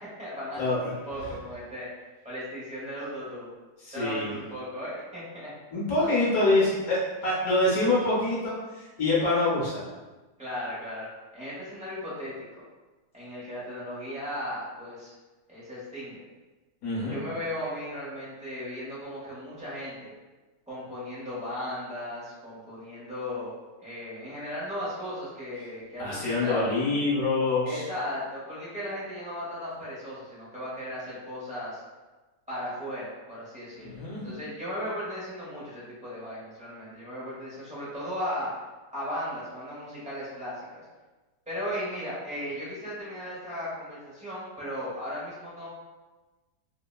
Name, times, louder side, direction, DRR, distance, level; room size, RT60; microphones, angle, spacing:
voice 1, 0.0-1.9 2.2-3.5 3.9-5.5 10.4-11.1 11.3-12.3 13.1-15.1 15.5-16.2 17.1-20.1 20.7-23.5 23.8-26.7 27.6-31.8 32.5-38.5 38.9-40.8 41.5-45.7, equal, 10° right, -10 dB, 0.4 m, -36 dB
voice 2, 3.8-4.3 5.7-9.8 16.8-17.2 26.0-27.8 33.8-34.2, left 2 dB, 60° left, -6 dB, 1.3 m, -25 dB
3.6 x 2.1 x 2.2 m, 1.2 s
omnidirectional pair, 1.9 m